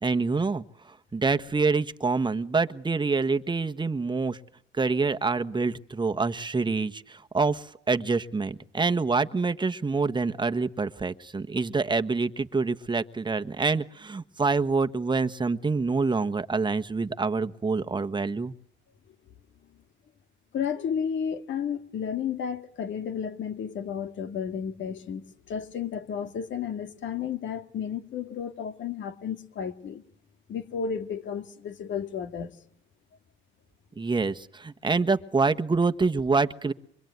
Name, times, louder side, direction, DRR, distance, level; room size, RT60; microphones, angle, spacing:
voice 1, 0.0-4.4 4.7-18.5 34.0-36.7, right 4 dB, 25° right, 1.3 m, -26 dB
voice 2, 20.5-30.0 30.5-32.5, left 7 dB, 70° left, 2.2 m, -32 dB
25.0 x 24.5 x 9.4 m
cardioid pair, 90°, 20 cm